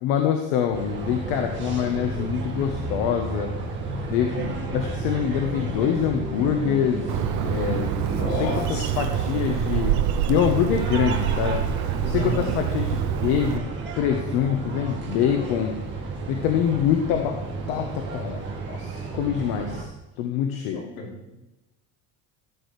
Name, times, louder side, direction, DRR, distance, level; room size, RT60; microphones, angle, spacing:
voice 1, 0.0-3.5 4.1-9.9 10.3-11.6 12.0-15.8 16.3-17.4 17.7-19.9 20.2-20.8, left 9 dB, 90° left, 4 dB, 1.1 m, -25 dB
sound 1, 0.7-19.8, right 3 dB, 30° right, 1.9 m, -32 dB
Bird, 7.1-13.6, right 9 dB, 55° right, 0.7 m, -26 dB
voice 2, 8.0-9.0 12.1-12.5 20.7-21.1, left 1 dB, 70° left, -1 dB, 3.3 m, -31 dB
13.5 x 8.5 x 3.3 m, 1.0 s
cardioid pair, 155°, 36 cm